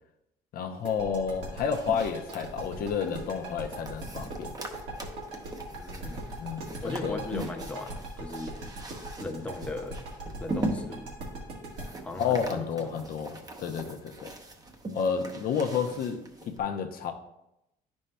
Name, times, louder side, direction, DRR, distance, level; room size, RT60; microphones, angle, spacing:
voice 1, 0.5-4.5 6.4-7.4 12.2-14.3 14.9-17.1, left 6 dB, 60° left, 5 dB, 0.7 m, -31 dB
sound 1, 0.9-13.6, right 2 dB, 85° right, 1.7 m, -40 dB
sound 2, 1.3-16.6, right 2 dB, 20° right, 0.8 m, -41 dB
voice 2, 5.7-6.3 6.8-8.6 9.2-11.1 12.0-13.0, left 2 dB, 10° left, 3 dB, 0.6 m, -38 dB
9.9 x 5.3 x 2.2 m, 0.85 s
cardioid pair, 110°, 17 cm